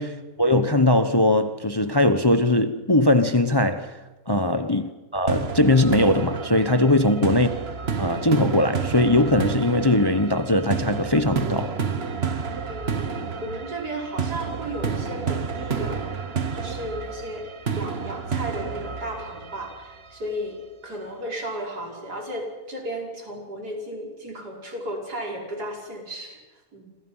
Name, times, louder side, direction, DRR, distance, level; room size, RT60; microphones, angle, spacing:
voice 1, 0.0-3.9 4.3-7.5 8.0-11.7, left 1 dB, 20° left, 0.9 m, -20 dB
sound 1, 5.3-20.2, right 5 dB, 45° right, 1.4 m, -30 dB
voice 2, 6.9-7.4 12.7-16.0 16.5-17.5 17.7-26.9, right 1 dB, 85° right, 5.9 m, -34 dB
28.0 x 27.0 x 5.7 m
omnidirectional pair, 1.7 m